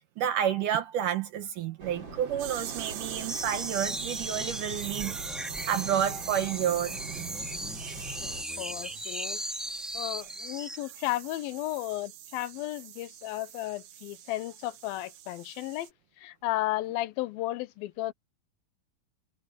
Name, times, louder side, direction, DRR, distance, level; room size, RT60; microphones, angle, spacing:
voice 1, 0.2-7.3 7.8-8.3, right 9 dB, 70° right, 2.5 m, -30 dB
sound 1, 1.8-8.4, right 2 dB, 30° right, 4.9 m, -43 dB
sound 2, 2.4-15.9, right 13 dB, 85° right, 3.0 m, -43 dB
sound 3, 3.3-10.8, equal, ahead, 3.7 m, -38 dB
voice 2, 8.6-9.4 9.9-15.9 16.2-18.1, left 16 dB, 85° left, 2.6 m, -34 dB
omnidirectional pair, 4.1 m